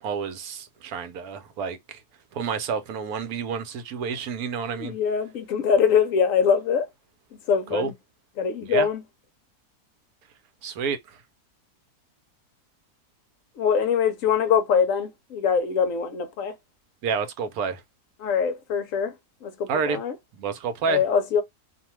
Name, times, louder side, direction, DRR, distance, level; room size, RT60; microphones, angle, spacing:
voice 1, 0.0-2.0 2.3-5.0 7.7-7.9 8.7-8.9 10.6-11.2 17.0-17.8 19.7-20.0 20.3-21.0, right 6 dB, 70° right, 1.1 m, -29 dB
voice 2, 4.7-6.9 7.5-7.9 8.4-9.0 13.6-16.5 18.2-19.1 19.4-20.1 20.9-21.4, left 7 dB, 70° left, 0.9 m, -23 dB
2.7 x 2.2 x 3.0 m
omnidirectional pair, 1.7 m